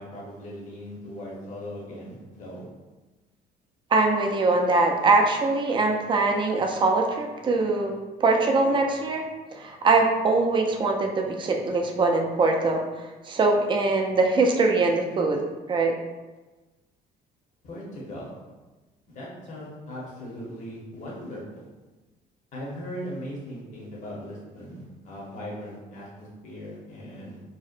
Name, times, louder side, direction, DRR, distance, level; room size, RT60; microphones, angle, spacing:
voice 1, 0.0-2.7 17.6-18.3 19.1-21.7 22.5-27.4, equal, 45° left, -5 dB, 0.8 m, -39 dB
voice 2, 3.9-7.9 8.2-12.8 13.3-15.4 15.7-15.9, right 3 dB, 30° right, 2 dB, 0.3 m, -22 dB
2.7 x 2.0 x 2.4 m, 1.2 s
cardioid pair, 110°, 17 cm